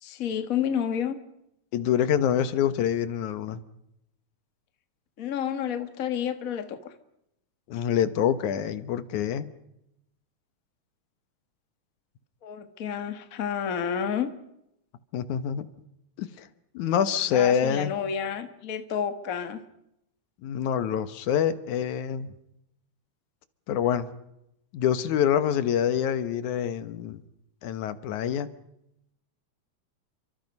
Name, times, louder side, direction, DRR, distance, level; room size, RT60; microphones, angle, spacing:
voice 1, 0.0-1.2 5.2-6.9 12.4-14.3 17.3-19.6, left 8 dB, 35° left, 8 dB, 1.5 m, -30 dB
voice 2, 1.7-3.6 7.7-9.5 15.1-15.7 16.2-16.5 16.7-17.9 20.4-22.3 23.7-24.1 24.7-27.2 27.6-28.5, left 9 dB, 80° left, 12 dB, 2.6 m, -26 dB
29.5 x 25.0 x 5.4 m, 0.83 s
omnidirectional pair, 3.4 m